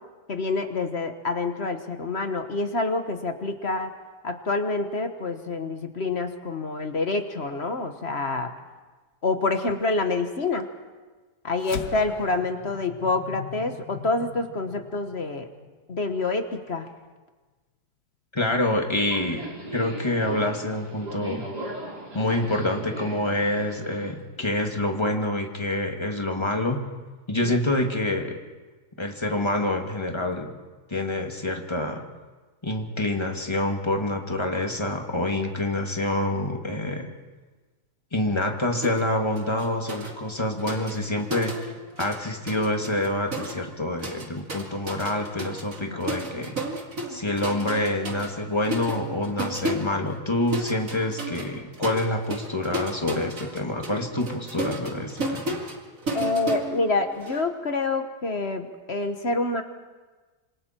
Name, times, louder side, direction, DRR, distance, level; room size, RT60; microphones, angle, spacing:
voice 1, 0.3-3.9 4.2-8.5 9.2-10.7 11.4-15.5 15.9-16.9 27.4-27.5 45.9-46.0 56.1-59.6, left 3 dB, 45° left, 7 dB, 1.5 m, -27 dB
sound 1, 11.6-16.2, left 8 dB, 75° left, 1.4 m, -40 dB
voice 2, 18.3-19.5 19.7-21.4 22.1-26.8 27.3-28.4 29.0-30.5 30.9-32.0 32.6-37.1 38.1-41.7 42.0-46.6 47.1-55.6, left 1 dB, 15° left, 2 dB, 2.2 m, -27 dB
Subway metro underground, 19.1-24.1, right 2 dB, 85° right, 4.5 m, -37 dB
sound 2, 38.8-39.1 39.4-42.2 42.5-57.4, right 1 dB, 55° right, 2.6 m, -34 dB
27.0 x 26.5 x 4.5 m, 1.3 s
omnidirectional pair, 1.7 m